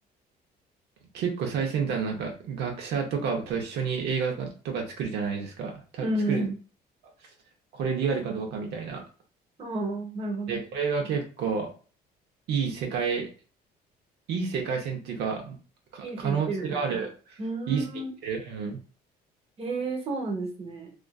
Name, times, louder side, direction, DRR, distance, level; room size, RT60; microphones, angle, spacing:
voice 1, 1.1-6.5 7.7-9.0 10.5-11.7 12.5-13.3 14.3-15.6 15.9-17.4 17.7-17.9 18.2-18.8, right 6 dB, 80° right, 2 dB, 0.6 m, -30 dB
voice 2, 6.0-6.5 9.6-10.6 16.0-17.0 17.4-18.1 19.6-20.9, right 2 dB, 35° right, 1 dB, 0.8 m, -31 dB
2.4 x 2.3 x 2.3 m, 0.36 s
cardioid pair, 110°, 17 cm